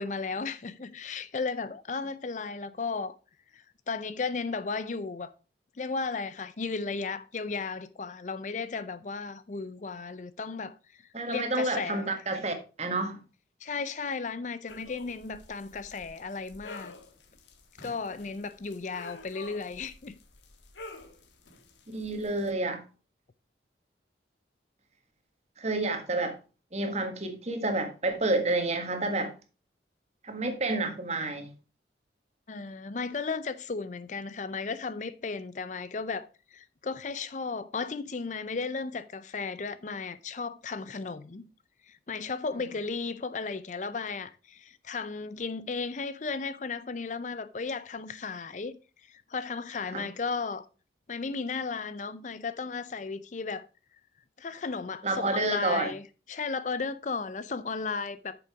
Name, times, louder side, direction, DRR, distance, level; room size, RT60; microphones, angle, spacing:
voice 1, 0.0-3.2 3.5-5.3 5.8-10.8 11.3-12.2 13.6-16.9 17.8-20.2 32.5-41.5 41.9-48.8 49.1-50.6 51.1-53.7 54.4-58.4, left 4 dB, 40° left, 0.5 m, -35 dB
voice 2, 11.1-13.2 21.9-22.8 25.6-26.4 26.7-29.3 30.2-31.5 49.9-50.1 55.0-55.9, right 2 dB, 35° right, 1.7 m, -29 dB
sound 1, 14.7-22.5, left 2 dB, 85° left, 1.6 m, -49 dB
8.6 x 6.8 x 4.8 m
head